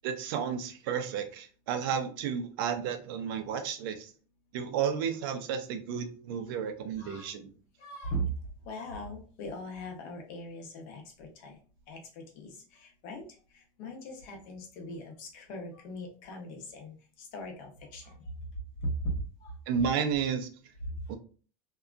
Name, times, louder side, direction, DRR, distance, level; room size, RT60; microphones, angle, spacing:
voice 1, 0.0-4.1 4.5-7.5 19.7-20.5 21.1-21.2, right 7 dB, 80° right, 7 dB, 0.5 m, -32 dB
voice 2, 7.0-7.3 7.8-8.2 8.6-11.6 11.9-13.2 13.5-18.1 18.8-19.1 19.4-19.5 20.8-21.0, right 1 dB, 70° left, 1 dB, 1.0 m, -39 dB
2.8 x 2.3 x 2.4 m, 0.38 s
supercardioid pair, 120°, 12 cm